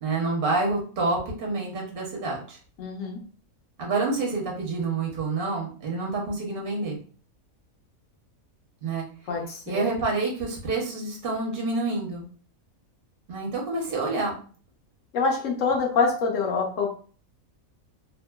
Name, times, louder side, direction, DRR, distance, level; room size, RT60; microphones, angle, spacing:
voice 1, 0.0-2.6 3.8-7.0 8.8-9.1 9.7-12.3 13.3-14.4, right 3 dB, 45° right, -2 dB, 0.9 m, -28 dB
voice 2, 2.8-3.2 9.3-9.8 15.1-16.9, left 4 dB, 65° left, 0 dB, 1.1 m, -25 dB
2.9 x 2.3 x 2.3 m, 0.41 s
omnidirectional pair, 1.5 m